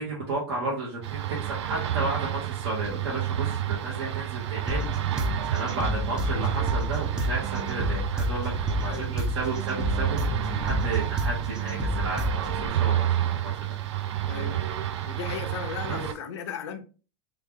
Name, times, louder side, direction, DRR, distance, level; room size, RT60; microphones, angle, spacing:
voice 1, 0.0-5.0 5.5-13.5 15.9-16.0, right 2 dB, 65° right, 1.2 m, -33 dB
sound 1, 1.0-16.1, right 12 dB, 85° right, 0.5 m, -30 dB
sound 2, 4.7-12.7, equal, 5° right, 0.4 m, -30 dB
voice 2, 14.3-14.6 15.1-16.8, left 7 dB, 75° left, 0.6 m, -36 dB
3.2 x 2.4 x 3.5 m
supercardioid pair, 160°, 14 cm